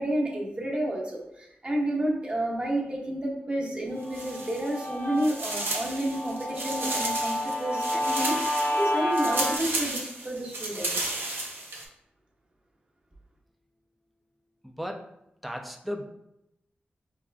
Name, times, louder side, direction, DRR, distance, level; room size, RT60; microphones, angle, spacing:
voice 1, 0.0-11.1, right 1 dB, 30° right, -2 dB, 0.9 m, -30 dB
sound 1, 4.0-4.9 5.2-11.8, right 2 dB, 80° right, 0.6 m, -33 dB
Guitar, 4.1-9.6, left 1 dB, 85° left, 0.8 m, -30 dB
voice 2, 14.6-15.0 15.4-16.1, equal, ahead, 2 dB, 0.3 m, -35 dB
4.7 x 2.4 x 2.2 m, 0.82 s
wide cardioid pair, 95°, 4 cm